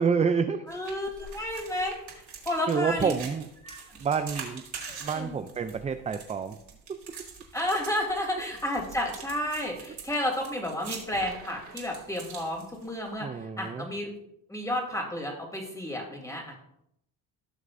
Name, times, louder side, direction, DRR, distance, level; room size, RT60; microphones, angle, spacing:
voice 1, 0.0-0.7 2.7-3.5 4.0-4.6 5.0-6.6 6.9-7.0 13.2-13.9, right 6 dB, 20° right, 9 dB, 0.3 m, -28 dB
voice 2, 0.7-2.0 2.4-3.2 3.6-3.8 4.8-5.3 7.5-14.1 14.5-16.6, left 1 dB, 10° left, 0 dB, 3.1 m, -31 dB
sound 1, 0.7-13.1, right 5 dB, 50° right, 3.0 m, -44 dB
17.5 x 6.5 x 2.6 m, 0.75 s
cardioid pair, 135°, 37 cm